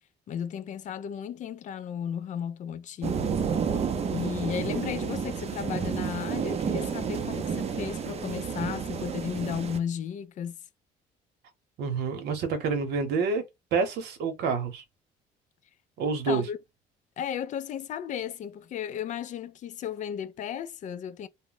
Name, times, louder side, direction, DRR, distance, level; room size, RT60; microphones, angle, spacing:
voice 1, 0.3-3.5 4.1-10.6 16.0-16.6 17.2-21.3, left 8 dB, 45° left, 0.4 m, -34 dB
sound 1, 3.0-9.8, right 6 dB, 40° right, 0.5 m, -30 dB
voice 2, 11.8-13.4 13.7-14.8 16.0-16.4, right 5 dB, 75° right, 0.9 m, -28 dB
2.2 x 2.0 x 3.8 m
cardioid pair, 110°, 17 cm